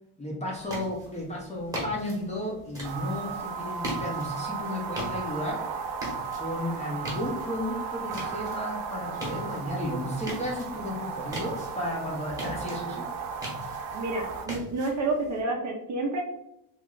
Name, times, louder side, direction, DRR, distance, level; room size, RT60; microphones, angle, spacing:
voice 1, 0.2-5.7 6.4-13.1, left 1 dB, 15° left, -3 dB, 0.5 m, -33 dB
sound 1, 0.5-15.4, equal, 5° right, 0.9 m, -41 dB
sound 2, 2.8-14.5, right 5 dB, 80° right, 0.7 m, -35 dB
voice 2, 13.9-16.2, right 2 dB, 40° right, 1 dB, 0.5 m, -29 dB
3.1 x 2.4 x 3.6 m, 0.79 s
cardioid pair, 170°, 48 cm